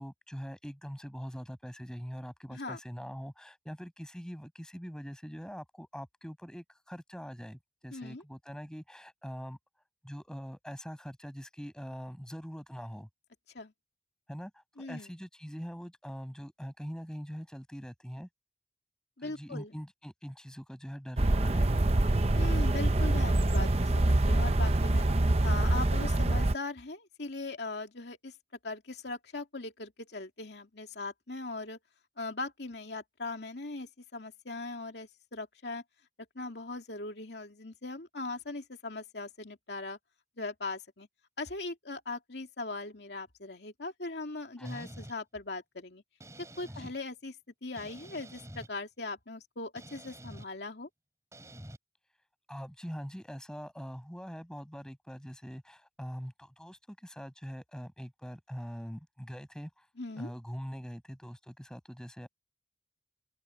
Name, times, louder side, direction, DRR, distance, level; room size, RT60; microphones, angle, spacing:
voice 1, 0.0-9.6 10.0-13.1 14.3-18.3 19.2-21.9 44.6-44.9 46.7-46.9 52.5-59.9 60.2-62.3, equal, 5° left, 6.0 m, -43 dB
voice 2, 7.9-8.2 13.5-13.7 14.8-15.1 19.2-19.7 22.3-25.1 25.4-28.3 28.6-31.8 32.2-35.8 36.3-40.0 40.4-41.1 41.4-46.0 46.6-47.3 47.6-50.9 60.0-60.3, left 3 dB, 75° left, 2.5 m, -40 dB
sound 1, 21.2-26.5, right 1 dB, 35° right, 0.7 m, -25 dB
sound 2, 44.6-45.1 46.2-46.9 47.8-48.7 49.8-50.5 51.3-51.8, right 1 dB, 15° right, 5.6 m, -48 dB
head